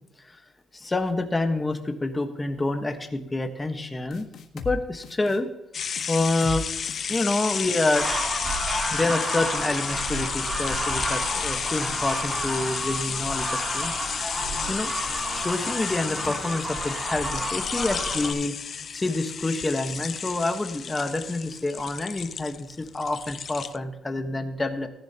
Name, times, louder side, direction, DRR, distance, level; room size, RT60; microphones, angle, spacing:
voice 1, 0.7-4.3 4.6-5.5 6.1-6.6 7.1-8.1 8.9-14.9 15.3-18.5 18.9-24.9, left 2 dB, 15° left, 6 dB, 1.3 m, -28 dB
sound 1, 4.1-4.8 5.0-5.4 5.9-6.6 6.9-7.2, left 6 dB, 55° left, 1.5 m, -36 dB
sound 2, 5.7-23.8, left 7 dB, 40° left, 0.4 m, -32 dB
sound 3, 7.9-18.3, right 1 dB, 15° right, 2.9 m, -31 dB
18.0 x 10.5 x 2.9 m, 0.88 s
cardioid pair, 150°, 0 cm